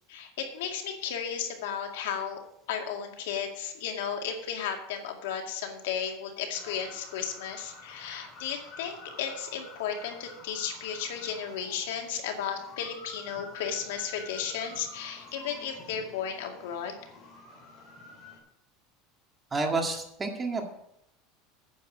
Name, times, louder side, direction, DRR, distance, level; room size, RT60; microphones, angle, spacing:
voice 1, 0.1-2.4 2.7-17.0, left 7 dB, 90° left, 3 dB, 2.2 m, -34 dB
sound 1, 6.5-18.4, left 3 dB, 35° left, 4.2 m, -49 dB
voice 2, 19.5-20.6, right 3 dB, 15° right, 3 dB, 1.9 m, -29 dB
9.5 x 7.1 x 7.3 m, 0.75 s
supercardioid pair, 145°, 0 cm